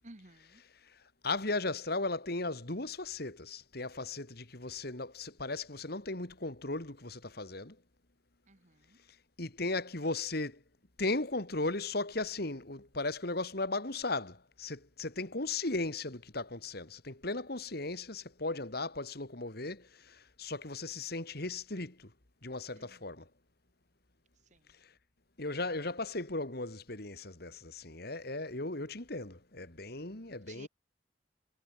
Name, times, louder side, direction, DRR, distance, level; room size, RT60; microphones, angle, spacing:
voice 1, 0.0-0.6 8.5-9.0 22.7-23.0 24.5-24.6 30.5-30.7, right 2 dB, 40° right, 1.7 m, -55 dB
voice 2, 1.2-7.8 9.4-10.6 11.0-22.1 22.4-23.3 25.4-30.7, left 2 dB, 55° left, 2.6 m, -36 dB
head